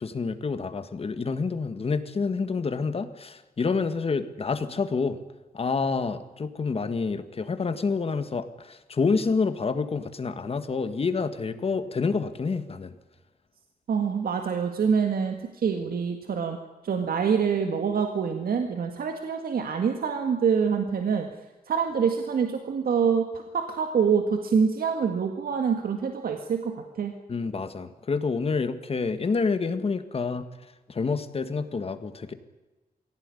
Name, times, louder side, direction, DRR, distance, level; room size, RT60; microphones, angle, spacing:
voice 1, 0.0-5.2 5.5-8.5 8.9-12.9 27.3-30.4 31.0-32.3, left 4 dB, 40° left, 10 dB, 1.7 m, -28 dB
voice 2, 13.9-15.4 15.6-16.6 16.8-21.2 21.7-23.3 23.5-27.1, right 6 dB, 80° right, 5 dB, 2.0 m, -25 dB
22.5 x 17.0 x 9.9 m, 1.2 s
wide cardioid pair, 155°, 15 cm